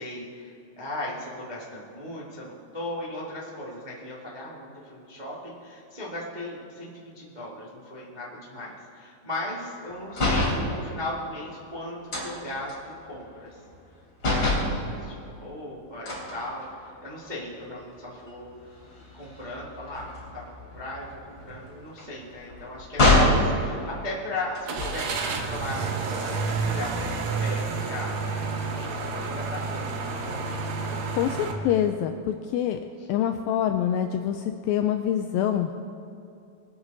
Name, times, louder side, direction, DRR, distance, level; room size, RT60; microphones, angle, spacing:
voice 1, 0.0-13.6 14.3-18.5 19.1-20.1 20.3-28.1 28.6-30.8 31.5-31.8, left 1 dB, 25° right, -6 dB, 0.9 m, -37 dB
sound 1, 10.1-10.6 12.1-13.9 14.2-14.7 16.1-17.1 17.6-17.8 18.1-23.5 24.5-25.2, left 2 dB, 25° left, 3.5 m, -26 dB
sound 2, 21.4-21.6 22.1-22.2 24.7-31.5, right 4 dB, 70° right, 1.7 m, -30 dB
voice 2, 31.2-32.8 33.1-35.7, left 10 dB, 85° left, 6 dB, 2.1 m, -25 dB
22.0 x 8.8 x 4.0 m, 2.6 s
omnidirectional pair, 4.6 m